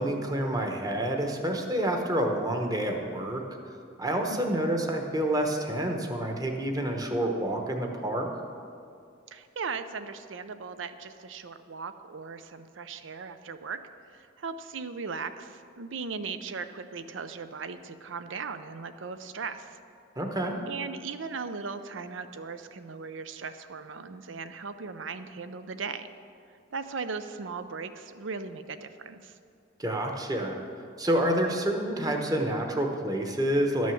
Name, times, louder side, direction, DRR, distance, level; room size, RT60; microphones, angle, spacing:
voice 1, 0.0-3.4 4.0-8.3 20.2-20.6 29.8-30.6 31.0-33.9, right 1 dB, 20° right, 3 dB, 1.0 m, -28 dB
voice 2, 9.3-13.8 14.1-19.8 20.6-26.1 26.7-29.4, right 5 dB, 85° right, 11 dB, 0.6 m, -38 dB
11.5 x 6.3 x 7.0 m, 2.5 s
head